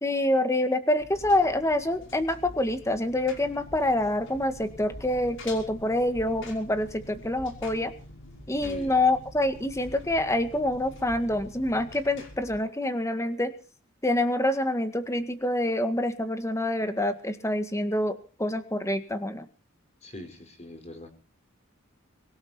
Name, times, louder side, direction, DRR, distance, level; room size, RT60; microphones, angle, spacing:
voice 1, 0.0-7.9 8.5-13.5 14.0-19.5, left 1 dB, 15° left, 9 dB, 1.9 m, -26 dB
Engine, 1.0-12.6, left 1 dB, 65° left, 5.7 m, -46 dB
voice 2, 8.6-9.0 20.0-21.1, left 1 dB, 35° left, 6 dB, 5.0 m, -43 dB
24.0 x 12.0 x 4.5 m, 0.38 s
head